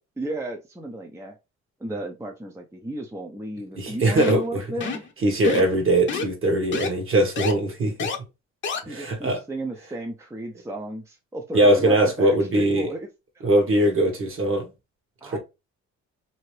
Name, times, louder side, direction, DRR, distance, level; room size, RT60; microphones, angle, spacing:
voice 1, 0.2-1.4 1.8-5.0 8.9-13.1 13.4-13.7 15.2-15.4, right 1 dB, 10° right, 0.5 m, -34 dB
voice 2, 3.8-4.6 5.2-8.1 8.9-9.4 11.5-12.9 13.4-14.7 15.2-15.4, right 1 dB, 45° right, 1.2 m, -21 dB
sound 1, 4.2-4.5 4.8-5.1 5.4-5.8 6.1-6.3 6.7-6.9 7.4-7.5 8.0-8.2 8.6-8.8, left 5 dB, 40° left, 0.8 m, -28 dB
2.8 x 2.5 x 3.1 m
cardioid pair, 90°, 30 cm